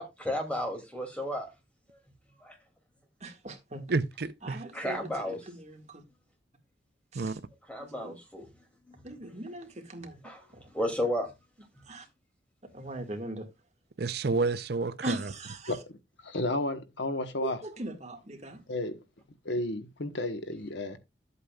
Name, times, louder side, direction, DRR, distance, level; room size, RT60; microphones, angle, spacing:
voice 1, 0.0-1.5 2.4-2.5 4.7-5.4 7.7-8.5 8.9-9.0 10.2-10.4 10.7-11.3, left 1 dB, 5° left, 2.6 m, -33 dB
voice 2, 3.2-3.8 4.4-6.0 7.1-7.4 7.8-8.2 9.0-10.2 11.9-12.0 12.7-13.5 15.0-15.8 17.4-18.6, right 2 dB, 35° right, 1.9 m, -40 dB
voice 3, 3.9-4.6 7.1-7.4 14.0-15.3, right 3 dB, 55° right, 0.6 m, -30 dB
voice 4, 16.2-17.6 18.7-19.0 19.4-21.0, left 2 dB, 70° left, 1.3 m, -32 dB
12.0 x 8.2 x 2.4 m
head